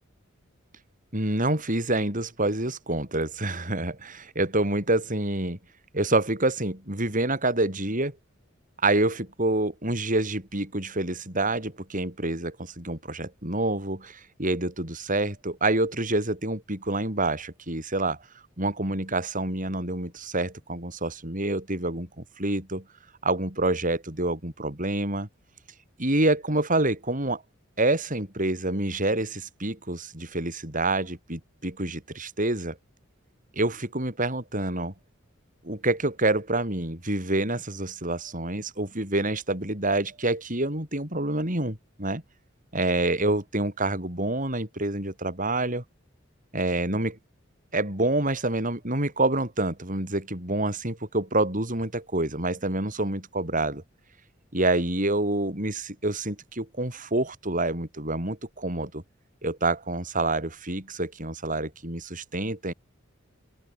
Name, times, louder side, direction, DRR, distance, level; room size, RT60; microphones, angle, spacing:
voice 1, 1.1-5.6 5.9-8.2 8.8-18.2 18.6-22.8 23.2-25.3 26.0-27.4 27.8-32.8 33.6-34.9 35.6-42.2 42.7-45.8 46.5-47.2 47.7-53.8 54.5-59.0 59.4-62.7, right 2 dB, 40° right, 7.5 m, -27 dB
open air
head